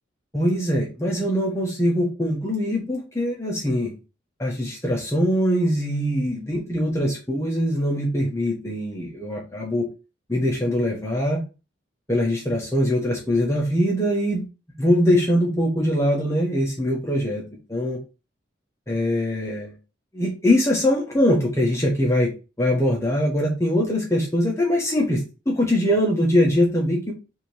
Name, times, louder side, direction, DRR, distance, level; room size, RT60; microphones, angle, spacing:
voice 1, 0.3-3.9 4.4-9.9 10.3-11.4 12.1-14.5 14.8-17.4 17.7-18.0 18.9-19.7 20.1-22.3 22.6-27.1, equal, 15° left, -1 dB, 0.8 m, -22 dB
3.3 x 2.7 x 4.3 m, 0.30 s
head